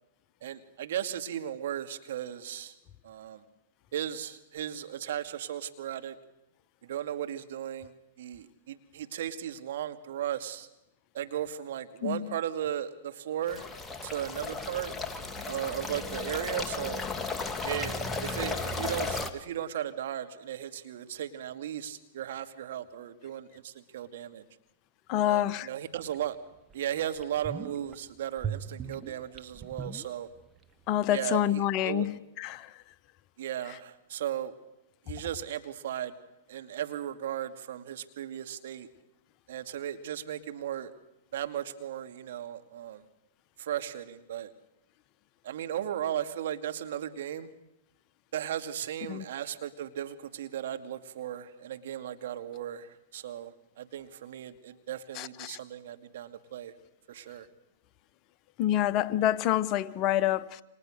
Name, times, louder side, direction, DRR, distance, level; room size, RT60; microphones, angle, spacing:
voice 1, 0.4-2.8 3.0-3.4 3.9-6.2 6.8-10.7 11.1-13.7 14.0-14.9 15.5-17.0 17.6-24.4 25.3-26.4 26.7-30.3 31.1-32.1 33.4-34.5 35.1-36.1 36.5-38.9 39.5-40.9 41.3-43.0 43.6-44.5 45.4-47.5 48.3-56.7 57.1-57.5, right 10 dB, 65° right, 2.3 m, -36 dB
sound 1, 13.5-19.3, left 3 dB, 10° left, 2.0 m, -35 dB
voice 2, 25.1-25.7 30.9-32.8 49.1-49.2 55.1-55.6 58.6-60.6, left 12 dB, 40° left, 1.0 m, -27 dB
sound 2, 26.1-26.2 26.7-26.8 27.2-28.0 28.4-30.6 30.9-31.0, right 7 dB, 20° right, 1.3 m, -39 dB
29.5 x 26.0 x 6.6 m
hypercardioid pair, 115°, 0 cm